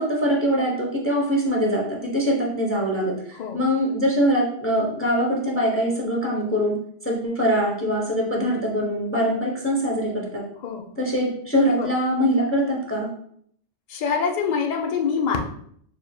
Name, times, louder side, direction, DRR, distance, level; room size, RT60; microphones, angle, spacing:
voice 1, 0.0-6.8 7.0-10.4 11.0-13.1, equal, 15° left, -2 dB, 0.7 m, -23 dB
voice 2, 13.9-15.4, left 6 dB, 50° left, 3 dB, 0.5 m, -25 dB
6.4 x 2.7 x 2.3 m, 0.65 s
omnidirectional pair, 1.3 m